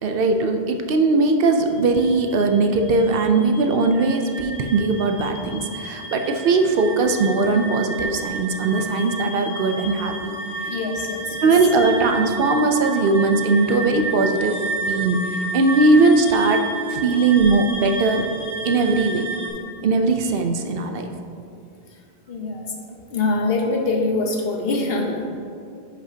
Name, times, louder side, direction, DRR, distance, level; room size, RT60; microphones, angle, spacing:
voice 1, 0.0-10.3 10.6-10.7 11.4-16.6 16.9-18.3 18.6-19.3 19.8-21.1, right 3 dB, 65° right, 5 dB, 0.7 m, -19 dB
sound 1, 1.7-19.5, right 2 dB, 15° left, 1.7 m, -31 dB
voice 2, 10.7-11.5 20.0-20.1 22.3-22.6 23.1-25.4, left 3 dB, 65° left, 2 dB, 1.1 m, -24 dB
10.0 x 5.6 x 2.7 m, 2.5 s
omnidirectional pair, 1.1 m